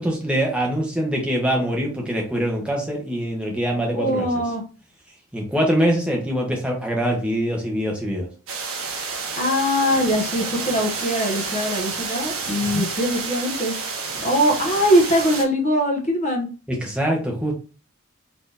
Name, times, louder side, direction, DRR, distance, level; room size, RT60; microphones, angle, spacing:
voice 1, 0.0-4.3 5.3-8.3 12.7-12.8 16.8-17.5, equal, 5° right, 0 dB, 1.0 m, -23 dB
voice 2, 3.9-4.6 9.4-13.7 14.2-16.5, equal, 30° left, 2 dB, 0.9 m, -21 dB
sound 1, 8.5-15.4, right 4 dB, 75° right, 1.2 m, -29 dB
4.3 x 2.9 x 3.4 m, 0.35 s
head